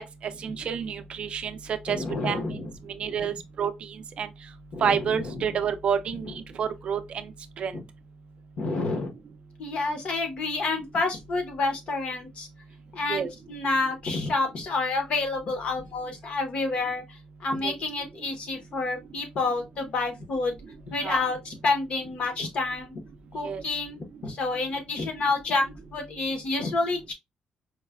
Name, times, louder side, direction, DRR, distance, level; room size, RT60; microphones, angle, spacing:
voice 1, 0.0-2.0 2.2-2.4 3.0-3.7 4.2-4.3 4.8-7.2 7.6-7.7 13.1-13.3 17.6-17.8 21.0-21.3 23.4-23.6, right 7 dB, 45° right, 0.4 m, -29 dB
voice 2, 1.9-2.7 3.0-3.3 4.7-5.5 6.2-6.3 7.7-7.8 8.6-9.1 9.6-12.5 12.9-20.6 20.9-23.0 23.3-27.1, left 3 dB, 50° left, 0.8 m, -29 dB
4.6 x 2.1 x 2.3 m
cardioid pair, 175°, 3 cm